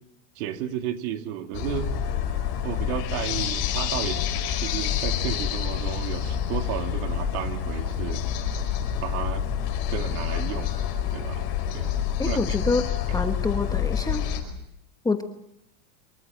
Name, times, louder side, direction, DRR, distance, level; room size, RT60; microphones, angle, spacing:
voice 1, 0.4-1.9 2.6-4.2 4.6-8.2 9.0-9.4 9.9-10.7 11.1-11.5 11.7-12.4 13.1-13.2, right 10 dB, 55° right, 6 dB, 2.5 m, -33 dB
sound 1, 1.5-14.4, left 9 dB, 50° left, 5.4 m, -28 dB
voice 2, 12.2-12.8 13.1-14.4 15.0-15.2, left 3 dB, 5° left, 6 dB, 1.1 m, -26 dB
24.5 x 23.0 x 7.7 m, 0.80 s
supercardioid pair, 150°, 48 cm